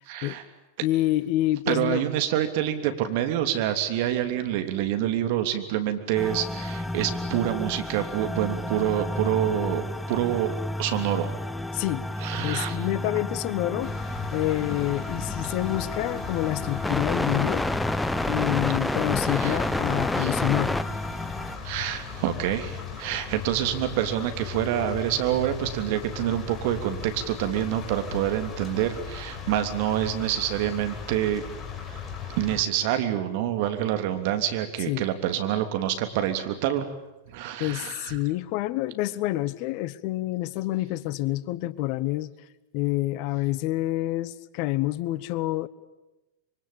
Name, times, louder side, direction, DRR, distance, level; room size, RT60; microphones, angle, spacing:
voice 1, 0.1-0.4 1.7-10.5 10.8-11.3 12.2-12.8 19.3-19.6 20.2-20.4 21.6-31.4 31.9-32.0 32.3-36.9 37.3-38.2, right 11 dB, 60° right, 8 dB, 3.2 m, -27 dB
voice 2, 0.8-2.0 11.7-13.9 14.3-17.6 18.3-20.8 34.9-35.1 37.6-42.3 42.7-45.7, left 17 dB, 50° left, 18 dB, 1.1 m, -27 dB
sound 1, 6.2-21.6, left 1 dB, 5° left, 1.0 m, -30 dB
sound 2, 13.8-32.6, left 7 dB, 25° left, 4.3 m, -38 dB
25.5 x 24.5 x 8.8 m, 1.0 s
hypercardioid pair, 100°, 0 cm